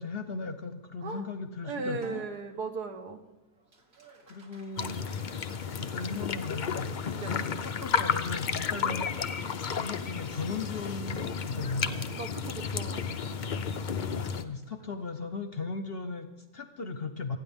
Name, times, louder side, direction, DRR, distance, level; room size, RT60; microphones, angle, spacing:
voice 1, 0.0-2.3 4.3-5.1 5.6-6.9 7.2-9.1 9.5-12.1 14.0-17.4, left 4 dB, 45° left, 9 dB, 0.9 m, -37 dB
voice 2, 1.6-3.2 7.2-7.4 8.7-9.0 12.1-13.0, right 4 dB, 75° right, 6 dB, 1.8 m, -37 dB
Applause, 2.0-16.6, equal, 40° right, 2.1 m, -57 dB
sound 1, 4.8-14.4, left 6 dB, 75° left, 0.4 m, -32 dB
28.0 x 9.8 x 3.6 m, 1.1 s
omnidirectional pair, 1.7 m